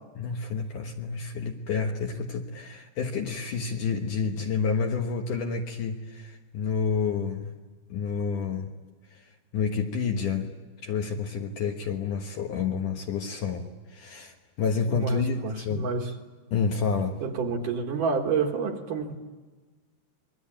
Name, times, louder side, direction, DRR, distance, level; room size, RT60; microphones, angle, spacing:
voice 1, 0.2-7.5 7.9-8.7 9.1-9.3 9.5-10.5 10.8-15.9 16.5-17.2, left 5 dB, 60° left, 3 dB, 2.4 m, -29 dB
voice 2, 14.9-16.1 17.2-19.1, right 5 dB, 60° right, 3 dB, 2.8 m, -29 dB
27.5 x 22.5 x 8.9 m, 1.3 s
omnidirectional pair, 4.9 m